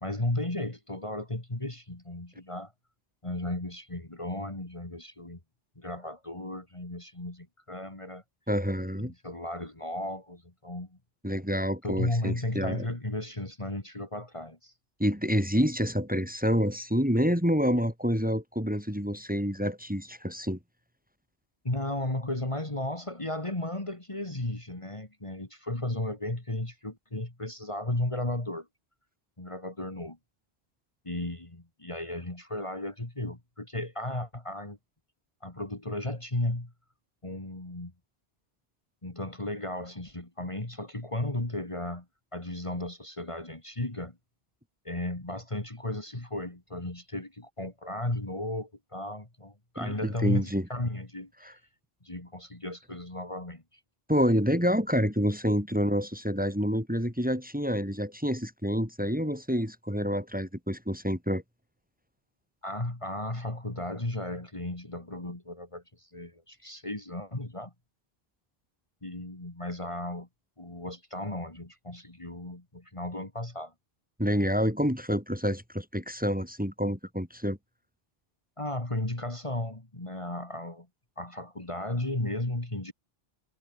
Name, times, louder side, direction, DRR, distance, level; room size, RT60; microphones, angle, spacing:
voice 1, 0.0-2.7 3.2-5.4 5.8-8.2 9.0-11.0 11.8-14.7 21.6-28.7 29.4-30.2 31.0-34.8 35.4-36.7 37.2-37.9 39.0-42.1 42.3-44.2 44.8-51.6 52.0-53.8 62.6-67.7 69.0-70.3 70.6-73.7 78.6-80.9 81.2-82.9, left 1 dB, 30° left, 2.7 m, -35 dB
voice 2, 8.5-9.1 11.2-12.9 15.0-20.6 49.8-50.7 51.4-51.5 54.1-61.4 74.2-77.6, equal, 10° right, 3.4 m, -28 dB
omnidirectional pair, 1.0 m